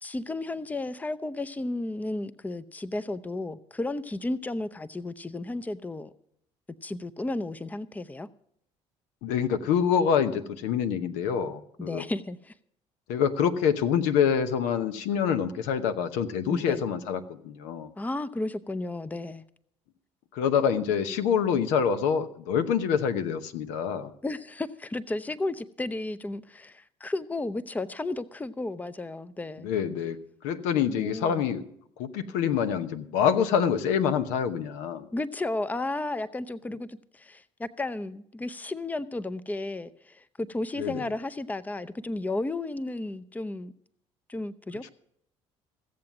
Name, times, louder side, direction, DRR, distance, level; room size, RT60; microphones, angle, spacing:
voice 1, 0.0-6.1 6.8-8.3 11.8-12.5 16.5-16.8 18.0-19.4 24.2-29.7 30.9-31.4 35.1-43.7 44.3-44.9, left 2 dB, 10° left, 14 dB, 0.6 m, -33 dB
voice 2, 9.2-12.0 13.1-17.9 20.3-24.1 29.6-30.2 30.4-31.6 32.0-35.1 40.8-41.0, left 7 dB, 80° left, 9 dB, 0.9 m, -26 dB
16.0 x 7.6 x 5.9 m, 0.69 s
supercardioid pair, 70°, 13 cm